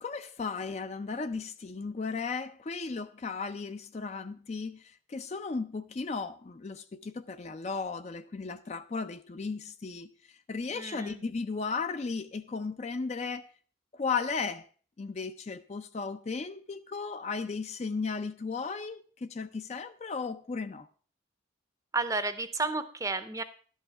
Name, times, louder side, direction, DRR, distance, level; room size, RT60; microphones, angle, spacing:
voice 1, 0.0-13.5 13.9-14.7 15.0-20.9, left 4 dB, 35° left, 0.4 m, -35 dB
voice 2, 10.7-11.2 21.9-23.4, right 3 dB, 15° right, 0.6 m, -32 dB
11.5 x 5.6 x 5.9 m
head